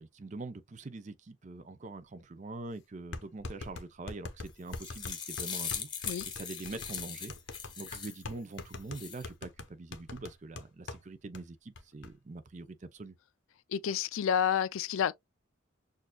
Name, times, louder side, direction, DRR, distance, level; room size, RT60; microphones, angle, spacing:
voice 1, 0.0-7.3 7.8-13.1, right 2 dB, 35° right, 0.5 m, -44 dB
sound 1, 2.2-2.3 3.1-11.0 11.3-11.4 11.8-12.1, left 3 dB, 65° left, 0.7 m, -43 dB
sound 2, 4.5-8.2 8.7-9.2, left 7 dB, 25° left, 0.8 m, -40 dB
voice 2, 13.7-15.1, left 8 dB, 90° left, 0.4 m, -29 dB
6.3 x 2.5 x 2.2 m
head